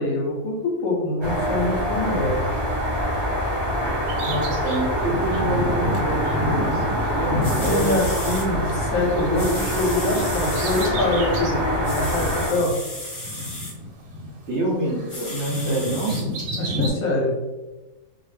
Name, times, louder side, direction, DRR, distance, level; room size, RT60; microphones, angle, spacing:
voice 1, 0.0-2.4 7.4-12.7 15.5-15.7 16.6-17.4, left 2 dB, 70° left, -2 dB, 1.0 m, -24 dB
sound 1, 1.2-12.5, equal, 25° right, 0.8 m, -25 dB
Bird vocalization bird call bird song, 4.1-8.7 9.0-11.7 12.2-12.3 13.1-14.6 14.9-16.9, equal, 90° right, 1.2 m, -31 dB
voice 2, 4.2-8.0 14.5-16.1, right 1 dB, 65° right, -5 dB, 0.7 m, -27 dB
sound 2, 7.4-8.5 9.3-10.9 11.8-13.7 15.1-16.2 16.9-17.0, left 1 dB, 25° left, 0.9 m, -34 dB
2.6 x 2.1 x 3.1 m, 1.1 s
omnidirectional pair, 1.7 m